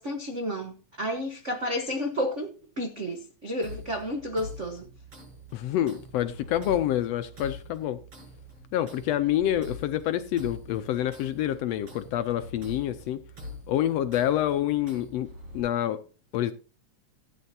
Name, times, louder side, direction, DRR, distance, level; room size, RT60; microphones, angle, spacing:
voice 1, 0.0-2.5 2.8-4.9, equal, 75° right, 0.6 m, -31 dB
sound 1, 3.6-15.6, left 1 dB, 50° right, 6.5 m, -44 dB
voice 2, 5.5-8.0 8.7-13.2 13.7-15.3 15.5-16.0 16.3-16.5, left 12 dB, 75° left, 1.6 m, -27 dB
16.0 x 9.4 x 2.8 m
omnidirectional pair, 3.4 m